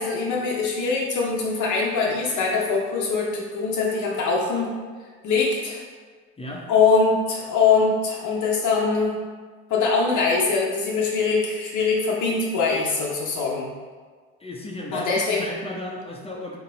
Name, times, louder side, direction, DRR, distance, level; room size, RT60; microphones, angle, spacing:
voice 1, 0.0-4.8 5.2-5.8 6.7-9.2 9.7-13.7 14.9-15.5, left 4 dB, 60° left, -2 dB, 0.7 m, -22 dB
voice 2, 14.4-16.6, left 1 dB, 15° left, -1 dB, 0.6 m, -35 dB
3.0 x 2.7 x 3.9 m, 1.5 s
hypercardioid pair, 60°, 34 cm